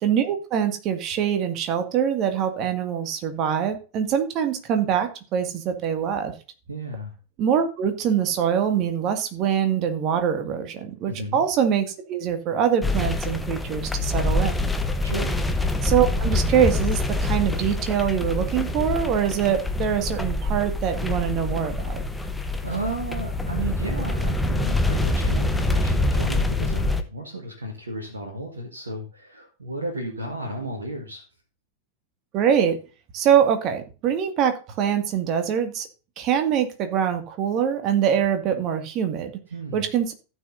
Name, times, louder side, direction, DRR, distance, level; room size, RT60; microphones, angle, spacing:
voice 1, 0.0-6.3 7.4-14.7 15.8-22.0 32.3-32.8 33.1-35.9 36.2-39.3 39.7-40.1, right 8 dB, 35° right, 6 dB, 2.1 m, -24 dB
voice 2, 6.7-7.1 11.1-11.4 15.0-15.4 22.2-31.2 39.5-39.9, right 2 dB, 75° right, 1 dB, 1.8 m, -33 dB
sound 1, 12.8-27.0, left 2 dB, 5° left, 1.1 m, -25 dB
15.5 x 6.4 x 2.7 m, 0.33 s
figure-of-eight pair, 90°, 0 cm